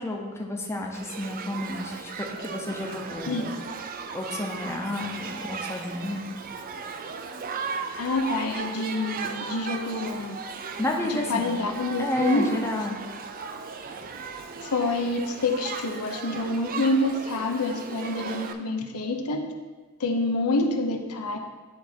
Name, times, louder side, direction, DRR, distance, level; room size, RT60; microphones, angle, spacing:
voice 1, 0.0-3.5 4.1-6.3 10.8-11.6 11.9-13.0, left 1 dB, 10° left, 0 dB, 0.6 m, -31 dB
Shout / Human group actions, 0.9-18.5, right 5 dB, 40° right, 0.4 m, -36 dB
voice 2, 8.0-10.4 11.0-12.5 14.6-19.5 20.0-21.4, left 2 dB, 85° left, 4 dB, 0.7 m, -27 dB
10.0 x 3.5 x 4.4 m, 1.4 s
head